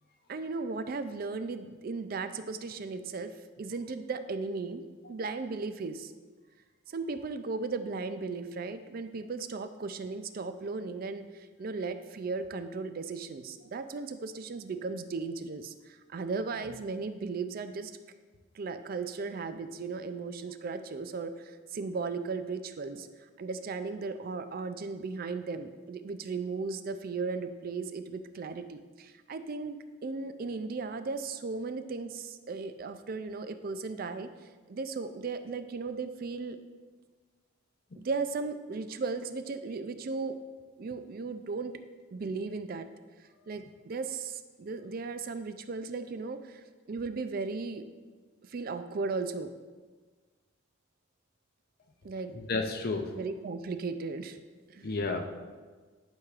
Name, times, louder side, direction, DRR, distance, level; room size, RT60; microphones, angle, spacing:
voice 1, 0.3-3.3 3.6-6.1 6.9-17.9 18.5-34.3 34.7-36.6 37.9-40.4 40.8-41.8 42.1-42.9 43.5-47.9 48.5-49.5 52.0-52.3 53.1-54.4 54.7-54.9, right 4 dB, 45° right, 10 dB, 0.4 m, -36 dB
voice 2, 52.3-53.1 54.8-55.3, left 3 dB, 50° left, 4 dB, 0.6 m, -31 dB
11.0 x 4.7 x 2.4 m, 1.4 s
head